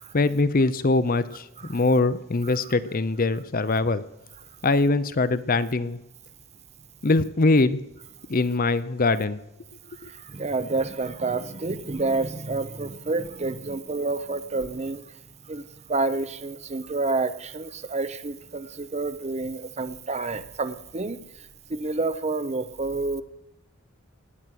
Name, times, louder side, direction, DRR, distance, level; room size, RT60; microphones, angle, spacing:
voice 1, 0.1-4.0 4.6-6.0 7.0-7.8 8.3-9.4, left 3 dB, 40° left, 14 dB, 0.6 m, -22 dB
voice 2, 10.0-15.0 15.4-15.6 15.9-23.2, right 3 dB, 30° right, 13 dB, 0.7 m, -29 dB
18.5 x 6.1 x 9.2 m, 0.94 s
head